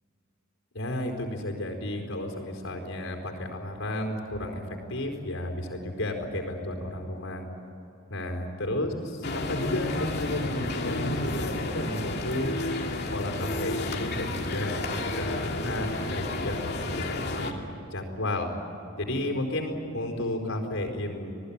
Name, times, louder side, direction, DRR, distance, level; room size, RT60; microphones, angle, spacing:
voice 1, 0.7-7.5 8.1-12.6 13.1-17.6 17.9-18.5 19.0-21.3, left 1 dB, 75° left, 3 dB, 4.5 m, -33 dB
sound 1, 9.2-17.5, left 2 dB, 55° left, 2.6 m, -31 dB
28.0 x 19.5 x 8.8 m, 2.9 s
head